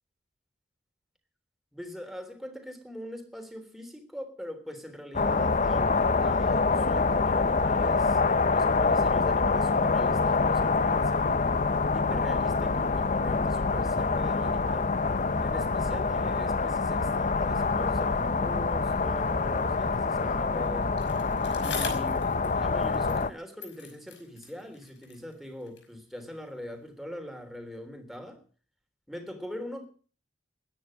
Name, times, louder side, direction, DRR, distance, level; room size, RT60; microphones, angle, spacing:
voice 1, 1.7-8.2 8.5-11.4 11.9-14.9 15.4-21.0 21.6-28.4 29.1-29.9, equal, ahead, 3.4 m, -41 dB
sound 1, 5.1-23.3, left 4 dB, 45° left, 0.7 m, -26 dB
Bicycle, 21.0-23.3 23.6-26.0 26.8-26.9, left 6 dB, 75° left, 5.6 m, -43 dB
21.0 x 10.0 x 6.4 m
head